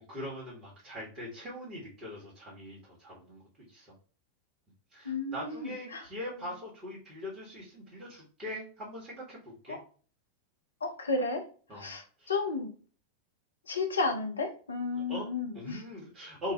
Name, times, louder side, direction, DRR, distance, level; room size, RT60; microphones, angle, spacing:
voice 1, 0.1-2.8 3.0-3.4 3.7-3.8 4.9-9.4 9.7-9.8 11.7-11.9 15.1-15.3 15.5-16.5, left 1 dB, 25° right, -6 dB, 1.2 m, -41 dB
voice 2, 5.0-6.1 6.4-6.5 9.7-9.8 10.8-11.4 11.7-12.7 13.7-15.8, left 3 dB, 75° left, 4 dB, 0.6 m, -33 dB
3.8 x 2.1 x 2.7 m, 0.40 s
figure-of-eight pair, 90°, 0 cm